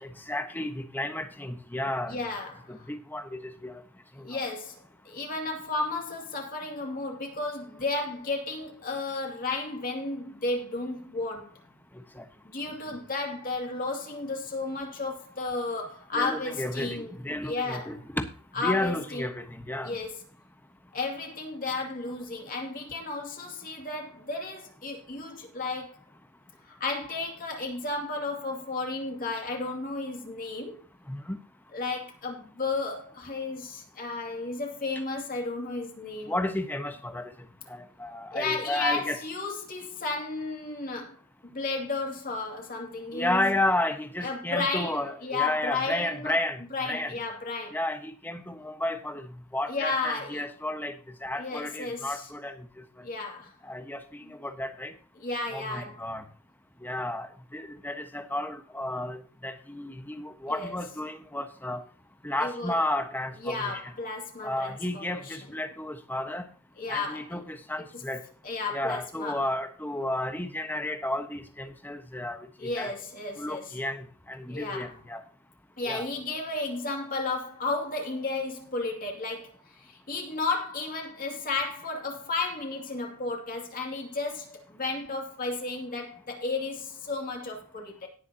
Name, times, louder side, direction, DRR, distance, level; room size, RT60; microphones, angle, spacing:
voice 1, 0.0-2.2 2.7-3.7 4.3-4.4 12.2-12.3 16.1-18.2 18.6-19.9 31.1-31.4 36.3-37.3 37.7-39.2 43.1-47.1 47.7-49.3 49.5-50.9 51.2-52.5 53.6-54.9 55.5-56.2 56.8-57.3 57.5-61.8 62.2-63.8 64.4-66.5 66.9-68.2 68.7-72.9 73.4-75.2 75.9-76.1, left 1 dB, 10° left, 1.2 m, -32 dB
voice 2, 2.1-2.9 4.2-4.8 5.0-11.7 12.4-17.1 17.4-17.9 18.5-19.2 19.8-20.1 20.9-26.0 26.7-30.8 31.7-36.3 38.3-41.2 41.4-43.5 44.2-46.4 46.7-47.8 49.7-50.5 51.4-52.3 53.0-53.5 55.2-56.0 60.5-60.7 62.4-62.8 63.4-65.4 66.8-67.4 67.9-68.0 68.4-69.4 72.6-73.8 74.5-74.9 75.8-88.1, left 3 dB, 40° left, 2.5 m, -33 dB
18.0 x 7.0 x 2.9 m
head